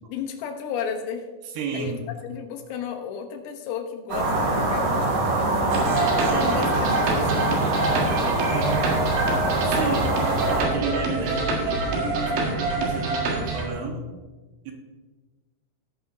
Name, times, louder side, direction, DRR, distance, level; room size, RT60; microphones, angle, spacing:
voice 1, 0.0-1.3 1.7-2.0 2.2-6.0 6.3-6.9 7.1-7.7 8.0-8.8, left 7 dB, 80° left, 5 dB, 3.2 m, -34 dB
voice 2, 1.4-2.0 6.3-6.5 9.7-10.2 10.6-14.1 14.6-14.7, right 5 dB, 70° right, 1 dB, 3.3 m, -32 dB
sound 1, 4.1-10.6, right 2 dB, 50° right, 3.7 m, -24 dB
sound 2, 5.7-13.7, right 2 dB, 90° right, 4.2 m, -26 dB
16.5 x 9.0 x 2.7 m, 1.3 s
omnidirectional pair, 5.0 m